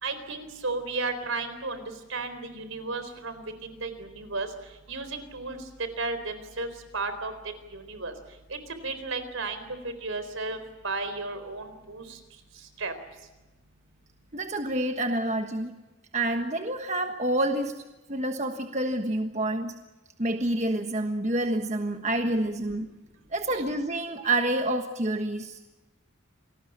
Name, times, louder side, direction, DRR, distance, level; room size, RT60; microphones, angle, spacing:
voice 1, 0.0-1.8 2.1-4.5 4.9-5.6 6.0-6.7 6.9-7.3 7.7-8.1 8.5-8.6 8.8-9.6 10.0-10.6 10.8-12.2 12.8-12.9, right 3 dB, 75° right, 10 dB, 4.1 m, -33 dB
voice 2, 14.3-15.7 16.1-17.7 18.1-19.7 20.2-22.9 23.3-25.6, right 1 dB, 35° right, 5 dB, 1.4 m, -28 dB
27.5 x 19.5 x 7.3 m, 1.1 s
head